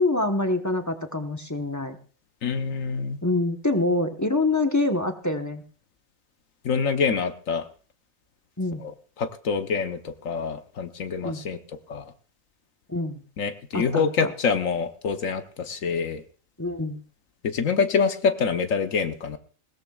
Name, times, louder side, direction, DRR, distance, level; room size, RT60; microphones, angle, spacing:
voice 1, 0.0-2.0 3.2-5.6 8.6-8.8 11.2-11.4 12.9-13.2 13.7-14.3 16.6-17.0, left 2 dB, 15° left, 5 dB, 1.0 m, -25 dB
voice 2, 2.4-3.2 6.6-7.7 8.8-8.9 9.2-11.6 11.9-12.1 13.4-16.2 17.4-19.4, left 5 dB, 75° left, 7 dB, 1.3 m, -26 dB
20.0 x 17.0 x 2.4 m, 0.41 s
omnidirectional pair, 1.4 m